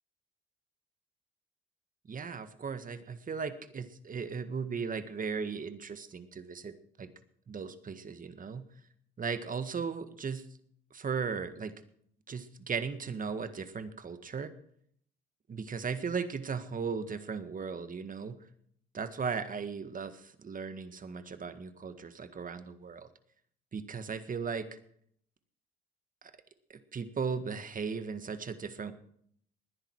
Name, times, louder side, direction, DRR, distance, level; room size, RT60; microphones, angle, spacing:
voice 1, 2.1-6.7 7.0-7.1 7.5-8.6 9.2-10.4 10.9-11.7 12.3-14.5 15.5-18.4 18.9-23.1 23.7-24.7 26.2-26.3 26.7-28.9, right 5 dB, 40° right, 11 dB, 1.7 m, -37 dB
20.0 x 10.5 x 4.7 m, 0.65 s
supercardioid pair, 75°, 21 cm